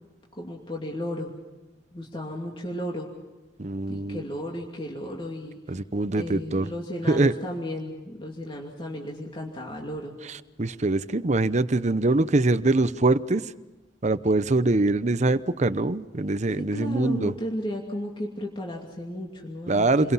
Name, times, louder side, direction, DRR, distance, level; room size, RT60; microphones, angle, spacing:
voice 1, 0.4-1.3 1.9-3.1 3.9-5.6 6.2-10.2 16.6-20.1, left 1 dB, 30° left, -1 dB, 2.7 m, -34 dB
voice 2, 3.6-4.2 5.7-6.7 7.1-7.3 10.3-13.5 14.0-17.3 19.7-20.1, right 2 dB, 40° right, 14 dB, 0.8 m, -23 dB
29.5 x 23.0 x 5.7 m, 1.1 s
head